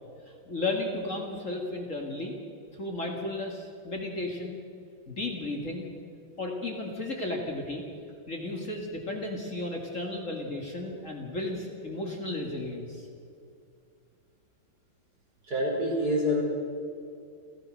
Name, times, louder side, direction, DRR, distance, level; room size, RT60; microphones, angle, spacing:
voice 1, 0.3-2.3 2.7-4.6 5.1-5.9 6.4-7.8 8.3-13.1, left 2 dB, 40° left, 1 dB, 2.5 m, -34 dB
voice 2, 15.5-16.4, left 1 dB, 50° right, -2 dB, 5.4 m, -26 dB
29.0 x 14.0 x 6.6 m, 2.5 s
omnidirectional pair, 2.2 m